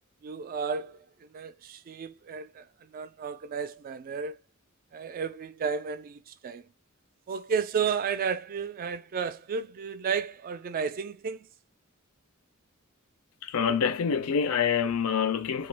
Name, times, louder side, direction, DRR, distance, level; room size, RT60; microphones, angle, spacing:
voice 1, 0.2-4.4 4.9-6.7 7.3-11.5, right 6 dB, 40° right, 0.3 m, -33 dB
voice 2, 13.4-15.7, left 7 dB, 75° left, 0.4 m, -26 dB
2.9 x 2.3 x 3.2 m
head